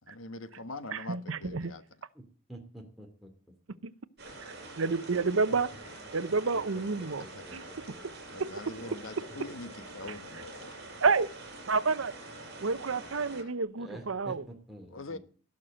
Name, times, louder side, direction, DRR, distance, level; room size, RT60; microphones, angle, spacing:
voice 1, 0.0-1.8 7.2-7.7 8.3-10.7 14.9-15.2, left 2 dB, 80° left, 1.3 m, -43 dB
voice 2, 0.9-1.7 3.8-3.9 4.4-5.7 6.1-7.2 7.5-7.6 8.4-8.5 11.0-11.3 11.7-12.1 12.6-14.5, right 4 dB, 80° right, 0.8 m, -29 dB
voice 3, 2.5-3.3 7.2-7.5 7.9-8.0 8.8-8.9 9.3-9.4 13.8-15.2, right 1 dB, ahead, 2.8 m, -47 dB
sound 1, 4.2-13.4, right 2 dB, 55° right, 5.6 m, -46 dB
18.0 x 6.6 x 7.8 m
head